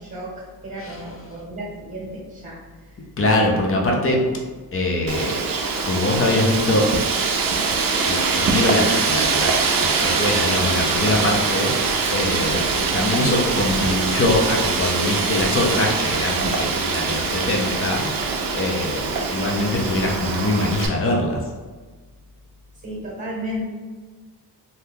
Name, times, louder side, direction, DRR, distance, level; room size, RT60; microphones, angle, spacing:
voice 1, 0.0-2.6 3.4-3.7 22.8-23.6, equal, 30° right, -5 dB, 0.9 m, -33 dB
voice 2, 0.8-1.2 3.2-4.4 4.7-5.4 5.8-6.9 8.0-18.3 18.5-21.4, left 1 dB, 35° left, -1 dB, 0.5 m, -23 dB
Wind, 5.1-20.9, right 4 dB, 60° right, 0.5 m, -23 dB
2.8 x 2.2 x 3.4 m, 1.4 s
wide cardioid pair, 135°, 39 cm